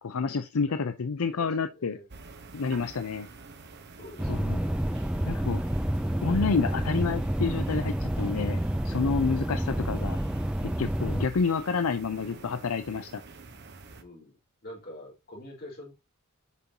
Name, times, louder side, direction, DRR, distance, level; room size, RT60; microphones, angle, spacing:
voice 1, 0.0-2.0 2.5-3.3 4.3-4.6 5.3-5.6 6.2-8.6 8.8-10.2 10.6-13.2, left 4 dB, 80° left, 0.6 m, -29 dB
voice 2, 1.2-2.1 4.0-4.8 11.3-11.5 12.0-12.7 13.9-15.9, left 1 dB, 45° left, 4.3 m, -48 dB
sound 1, 2.1-14.0, right 3 dB, 50° right, 1.0 m, -47 dB
sound 2, 4.2-11.3, right 1 dB, 5° right, 0.4 m, -29 dB
8.3 x 5.4 x 2.9 m
head